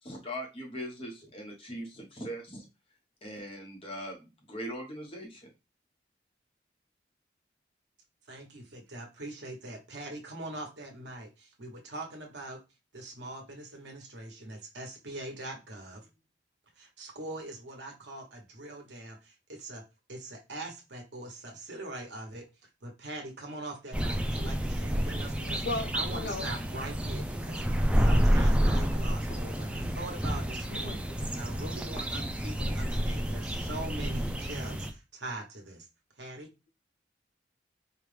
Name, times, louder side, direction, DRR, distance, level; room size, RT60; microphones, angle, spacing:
voice 1, 0.0-2.7 3.2-5.5, equal, 30° left, 1.2 m, -40 dB
voice 2, 8.3-12.6 12.9-16.0 16.8-19.8 20.1-22.5 22.8-25.6 25.9-31.0 31.3-35.9 36.2-36.5, right 2 dB, 80° right, 1.2 m, -42 dB
sound 1, 23.9-34.9, equal, 5° right, 0.4 m, -29 dB
voice 3, 25.4-26.5 30.8-31.0, left 3 dB, 65° left, 0.6 m, -36 dB
4.6 x 2.4 x 3.3 m
head